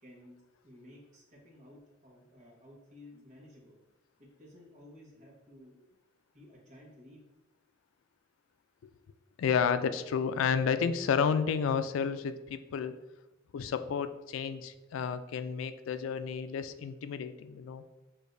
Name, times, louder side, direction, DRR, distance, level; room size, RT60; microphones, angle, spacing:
voice 1, 0.0-3.8 4.2-5.8 6.3-7.2 14.7-14.8, left 1 dB, 40° right, -4 dB, 1.2 m, -55 dB
voice 2, 9.4-12.9 13.5-17.8, left 6 dB, 90° left, 11 dB, 0.3 m, -31 dB
6.4 x 2.7 x 2.6 m, 1.0 s
head